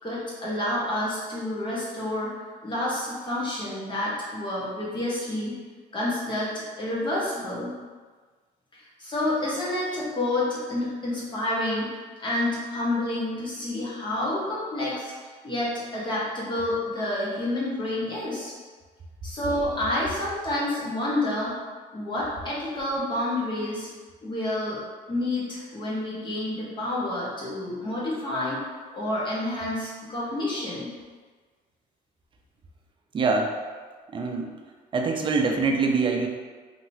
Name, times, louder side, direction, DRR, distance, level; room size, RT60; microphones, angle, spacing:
voice 1, 0.0-2.4 2.6-5.6 5.9-7.7 8.7-18.5 19.2-21.5 21.9-23.9 24.2-24.8 25.1-28.6 28.9-30.9, left 1 dB, 25° left, -7 dB, 1.1 m, -29 dB
voice 2, 33.1-33.5 34.1-34.5 34.9-36.3, right 4 dB, 30° right, 2 dB, 0.4 m, -24 dB
2.9 x 2.8 x 2.7 m, 1.4 s
cardioid pair, 110°, 17 cm